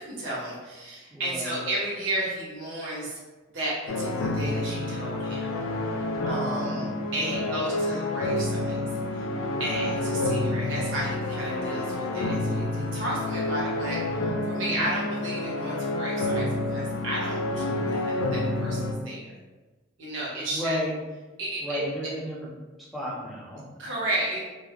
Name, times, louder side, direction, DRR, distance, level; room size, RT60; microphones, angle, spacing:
voice 1, 0.0-3.2 3.5-5.6 6.3-8.8 9.1-9.2 9.6-19.2 20.0-20.8 21.4-21.8 23.8-24.4, right 1 dB, 65° right, -6 dB, 0.8 m, -33 dB
voice 2, 1.1-1.6 6.2-6.9 7.2-7.7 9.5-9.9 14.6-14.9 20.3-20.9 21.6-22.5 22.8-23.6, equal, ahead, -6 dB, 0.4 m, -34 dB
sound 1, 3.9-18.9, left 2 dB, 90° left, 0.3 m, -29 dB
2.3 x 2.0 x 2.8 m, 1.2 s
head